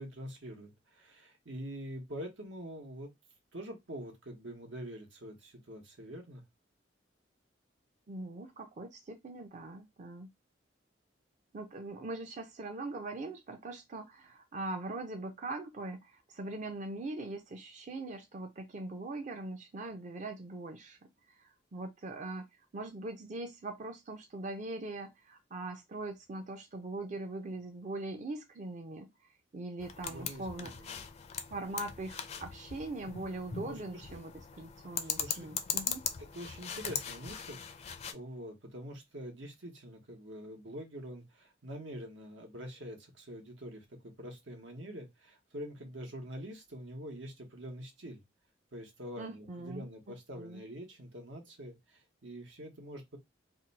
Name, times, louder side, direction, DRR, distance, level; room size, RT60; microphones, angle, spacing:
voice 1, 0.0-3.1 3.5-6.4 30.1-31.0 33.6-34.2 35.0-35.5 36.2-48.2 48.7-53.2, equal, 90° right, 1.1 m, -45 dB
voice 2, 8.1-10.3 11.5-21.0 21.4-22.5 22.7-29.1 29.5-31.0 31.5-34.3 34.6-36.0 49.2-50.6, right 2 dB, 40° right, 0.5 m, -41 dB
sound 1, 29.8-38.1, left 7 dB, 35° left, 0.4 m, -40 dB
2.7 x 2.2 x 4.0 m
head